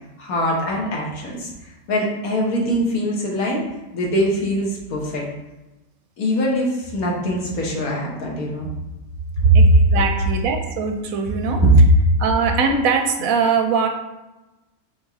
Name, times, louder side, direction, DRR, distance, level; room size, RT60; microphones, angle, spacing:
voice 1, 0.2-1.5 1.9-3.6 3.9-5.2 6.2-8.7 9.4-9.8 10.1-10.2 11.5-11.7, right 1 dB, 80° left, -3 dB, 1.5 m, -20 dB
voice 2, 9.5-11.6 12.2-13.9, right 5 dB, 80° right, 4 dB, 1.0 m, -21 dB
4.0 x 3.4 x 3.5 m, 1.0 s
omnidirectional pair, 1.5 m